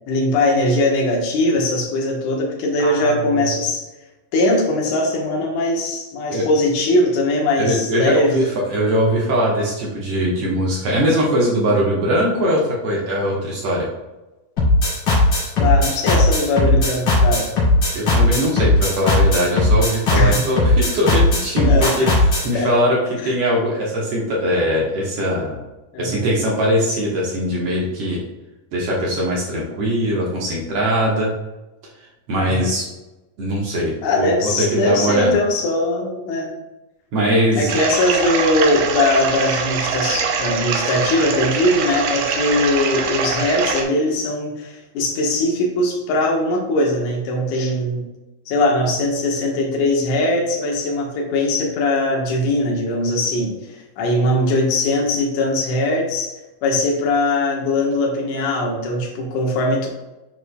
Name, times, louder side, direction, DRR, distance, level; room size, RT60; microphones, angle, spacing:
voice 1, 0.1-3.9 4.3-8.4 15.6-17.5 20.1-20.5 21.6-22.1 22.5-22.7 23.2-23.3 25.9-26.3 32.3-32.7 34.0-36.5 37.5-48.0 48.5-56.3 56.6-59.9, left 1 dB, 70° left, -1 dB, 2.7 m, -20 dB
voice 2, 2.8-3.4 6.3-6.5 7.6-8.4 8.7-13.9 17.9-25.6 26.0-28.2 28.7-31.3 32.3-32.8 33.4-34.3 34.6-35.3 37.1-37.7, equal, 60° right, -4 dB, 1.9 m, -21 dB
sound 1, 14.6-22.5, left 2 dB, 45° left, 3.0 m, -17 dB
sound 2, 37.7-43.8, right 5 dB, 80° right, 2.4 m, -23 dB
9.5 x 4.5 x 2.3 m, 1.0 s
omnidirectional pair, 4.0 m